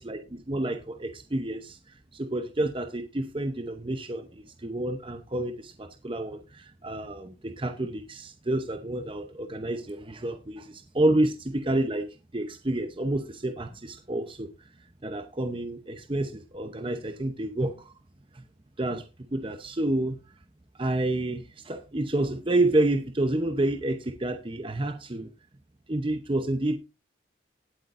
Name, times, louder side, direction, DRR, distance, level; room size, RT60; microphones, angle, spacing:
voice 1, 0.0-14.5 15.0-17.9 18.3-18.4 18.8-20.2 20.8-25.3 25.9-26.8, right 1 dB, 25° right, 0.7 m, -29 dB
19.5 x 8.4 x 2.5 m
head